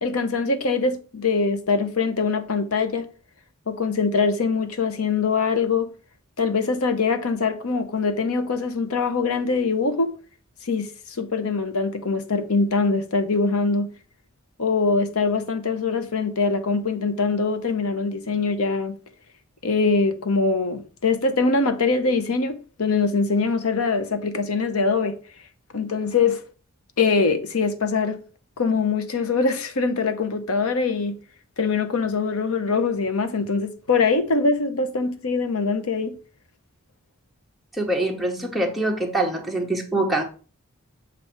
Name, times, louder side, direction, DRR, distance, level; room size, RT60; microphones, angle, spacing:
voice 1, 0.0-3.1 3.7-5.9 6.4-10.1 10.6-13.9 14.6-19.0 19.6-25.2 25.7-26.4 27.0-28.2 28.6-31.2 31.6-36.2, left 4 dB, 85° left, 0.8 m, -23 dB
voice 2, 37.8-40.2, right 2 dB, ahead, 1.0 m, -24 dB
7.2 x 2.6 x 5.7 m
head